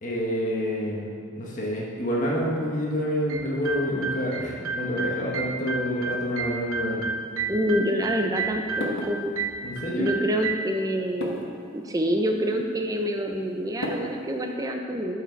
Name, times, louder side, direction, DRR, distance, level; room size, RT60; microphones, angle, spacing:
voice 1, 0.0-7.0 9.6-10.1, equal, 35° left, -4 dB, 1.2 m, -28 dB
sound 1, 3.3-10.6, right 4 dB, 85° right, 0.6 m, -32 dB
Setting Drink Down, 7.2-14.6, equal, 80° left, 1.1 m, -39 dB
voice 2, 7.5-9.4 10.0-11.4 11.7-15.2, equal, 15° right, 3 dB, 0.5 m, -27 dB
8.7 x 4.9 x 4.5 m, 2.4 s
head